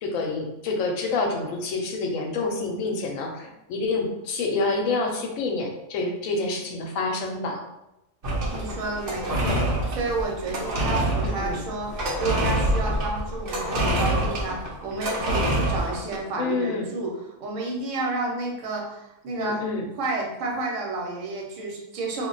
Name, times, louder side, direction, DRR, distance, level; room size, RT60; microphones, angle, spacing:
voice 1, 0.0-7.6 11.2-11.6 16.4-16.9 19.4-19.8, left 3 dB, 90° left, 2 dB, 1.0 m, -28 dB
sound 1, 8.2-16.2, right 1 dB, 55° right, 0.7 m, -26 dB
voice 2, 8.5-9.6 9.9-19.6 20.0-22.3, right 3 dB, 75° right, 0 dB, 1.0 m, -30 dB
2.4 x 2.1 x 3.8 m, 0.91 s
omnidirectional pair, 1.4 m